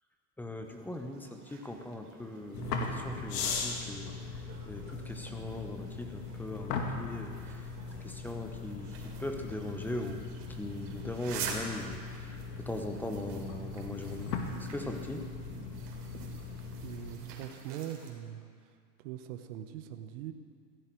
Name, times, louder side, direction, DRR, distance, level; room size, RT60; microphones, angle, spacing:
voice 1, 0.4-8.9 9.2-15.2, left 1 dB, 5° left, 4 dB, 0.8 m, -40 dB
sound 1, 0.6-18.1, right 5 dB, 65° right, 3.6 m, -48 dB
sound 2, 2.5-17.2, left 4 dB, 75° left, 2.4 m, -39 dB
voice 2, 16.8-20.3, right 11 dB, 50° right, 7 dB, 1.2 m, -42 dB
16.5 x 15.0 x 4.6 m, 2.1 s
supercardioid pair, 140°, 49 cm